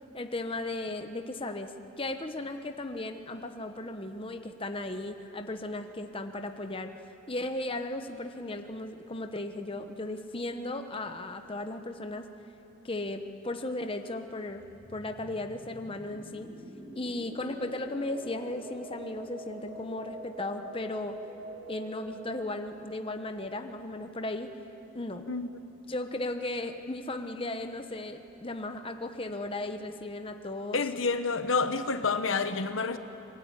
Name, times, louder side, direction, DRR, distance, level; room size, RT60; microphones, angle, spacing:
voice 1, 0.1-6.9 7.3-12.3 12.8-14.6 14.9-16.5 16.9-21.2 21.7-24.5 24.9-25.3 25.9-30.8, left 2 dB, 25° left, 6 dB, 1.0 m, -36 dB
sound 1, 14.5-25.0, right 1 dB, 30° right, 5.1 m, -46 dB
voice 2, 30.7-33.0, left 4 dB, 70° left, 9 dB, 1.2 m, -28 dB
25.0 x 23.0 x 9.6 m, 2.9 s
head